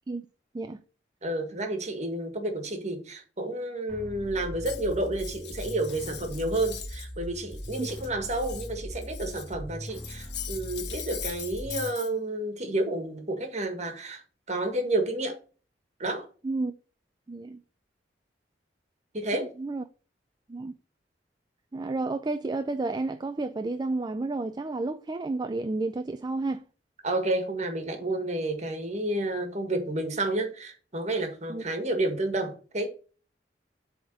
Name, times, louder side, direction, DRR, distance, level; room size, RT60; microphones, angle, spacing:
voice 1, 1.2-14.2 14.5-15.4 16.0-16.3 19.1-19.5 27.0-32.9, right 2 dB, 40° right, 1.7 m, -30 dB
sound 1, 3.9-11.9, equal, 5° left, 1.8 m, -40 dB
Cutlery silverware, 4.6-7.1 7.4-9.5 9.9-12.1, left 10 dB, 70° left, 1.4 m, -41 dB
voice 2, 17.3-17.6 19.3-19.8 20.5-20.7 21.7-26.6 31.5-31.6, right 2 dB, 25° right, 0.4 m, -31 dB
7.9 x 3.6 x 6.5 m
head